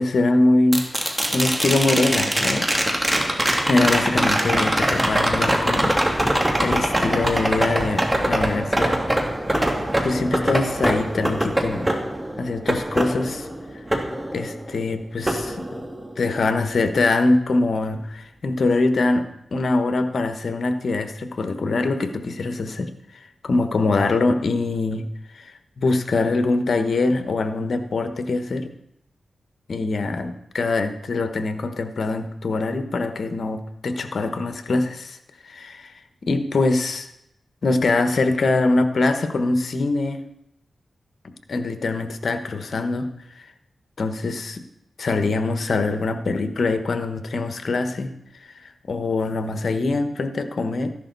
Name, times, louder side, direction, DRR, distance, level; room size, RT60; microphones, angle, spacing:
voice 1, 0.0-2.7 3.7-8.9 10.0-11.9 12.4-13.5 14.3-15.6 16.2-19.2 19.5-22.9 23.4-25.0 25.3-28.7 29.7-35.2 35.4-35.9 36.3-37.1 37.6-40.2 41.5-43.1 44.0-44.6 45.0-48.1 48.4-48.5 48.9-50.9, left 3 dB, 65° left, 8 dB, 1.3 m, -23 dB
sound 1, 0.7-14.8 15.3-16.3 18.5-18.6, right 1 dB, 15° right, 2.2 m, -23 dB
14.5 x 11.0 x 4.1 m, 0.80 s
cardioid pair, 60°, 0 cm